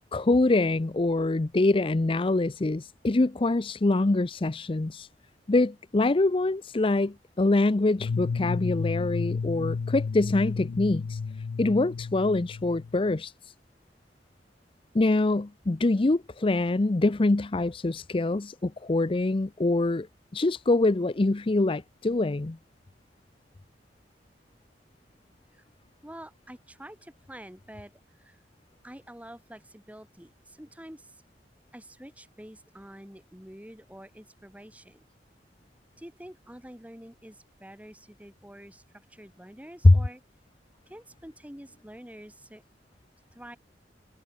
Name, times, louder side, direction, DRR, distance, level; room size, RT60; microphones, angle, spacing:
voice 1, 0.1-5.1 5.5-11.2 11.6-13.3 14.9-20.1 20.3-22.6 39.8-40.0, left 2 dB, 30° left, 0.5 m, -24 dB
sound 1, 8.0-13.1, left 5 dB, 80° left, 0.4 m, -32 dB
voice 2, 26.0-28.4 28.8-31.2 31.7-35.0 36.0-40.2 40.9-42.6 43.3-43.6, right 1 dB, 10° right, 2.2 m, -47 dB
head